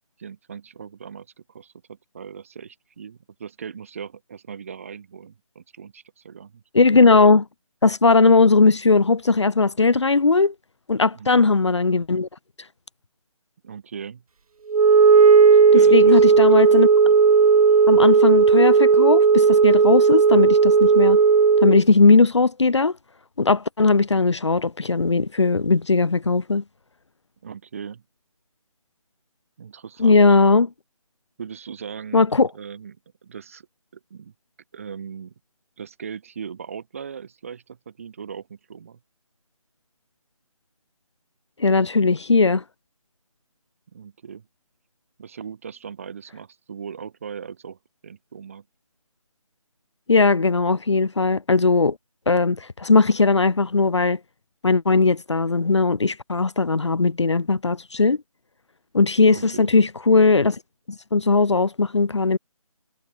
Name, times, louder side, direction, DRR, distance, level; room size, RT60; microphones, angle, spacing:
voice 1, 0.2-6.6 11.1-11.5 13.6-14.2 15.7-16.5 27.4-28.0 29.6-30.3 31.4-32.3 32.5-33.0 33.2-33.7 34.1-34.3 34.7-35.3 35.8-39.0 43.9-44.5 45.2-48.6 59.3-59.8, right 7 dB, 25° right, 6.0 m, -39 dB
voice 2, 6.7-7.5 7.8-10.5 10.9-12.3 15.7-16.9 17.9-21.2 21.6-22.9 23.4-26.6 30.0-30.7 32.1-32.5 41.6-42.6 50.1-52.0 52.3-54.2 54.6-58.2 58.9-60.6 61.1-62.4, left 3 dB, 50° left, 2.0 m, -18 dB
Wind instrument woodwind instrument, 14.7-21.8, right 5 dB, 80° right, 0.5 m, -14 dB
figure-of-eight pair, 175°, 18 cm